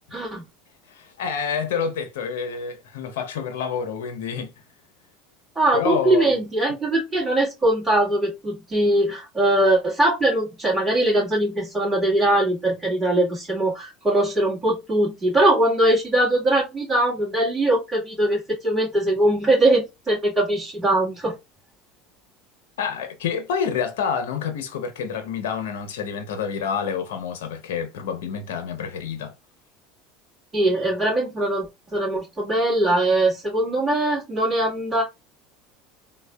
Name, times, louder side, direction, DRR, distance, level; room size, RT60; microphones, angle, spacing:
voice 1, 0.1-0.4 5.6-21.3 30.5-31.7 31.9-35.0, right 1 dB, 15° right, 2.2 m, -21 dB
voice 2, 0.9-4.6 5.7-6.4 22.8-29.3, left 7 dB, 85° left, 0.7 m, -28 dB
3.5 x 2.3 x 3.3 m
supercardioid pair, 105°, 0 cm